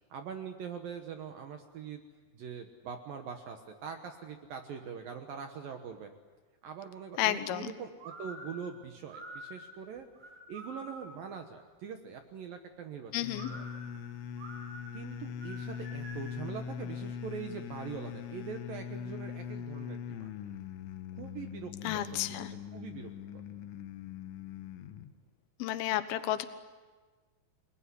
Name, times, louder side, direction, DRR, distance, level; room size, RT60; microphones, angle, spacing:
voice 1, 0.1-2.0 2.3-6.1 6.6-10.1 10.5-13.7 14.9-20.3 21.1-23.1, right 7 dB, 65° right, 5 dB, 2.5 m, -43 dB
voice 2, 7.2-7.7 13.1-13.5 21.8-22.5 25.6-26.5, left 13 dB, 70° left, 11 dB, 2.7 m, -31 dB
sound 1, 8.0-11.3 13.3-16.4, equal, 50° right, 6.6 m, -48 dB
sound 2, 13.2-25.1, left 8 dB, 90° left, 3.7 m, -42 dB
29.5 x 20.5 x 9.8 m, 1.4 s
omnidirectional pair, 5.3 m